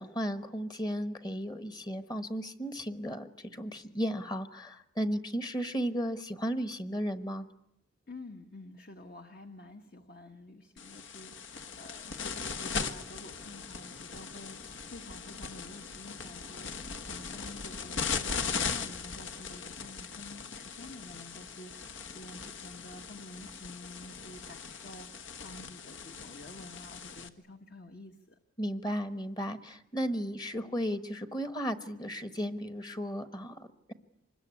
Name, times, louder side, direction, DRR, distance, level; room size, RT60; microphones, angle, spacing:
voice 1, 0.0-7.4 28.6-33.9, equal, 20° left, 11 dB, 1.2 m, -35 dB
voice 2, 8.1-28.4, left 2 dB, 50° left, 6 dB, 1.3 m, -49 dB
sound 1, 10.8-27.3, left 5 dB, 70° left, 1.4 m, -39 dB
25.0 x 21.0 x 9.6 m, 0.76 s
head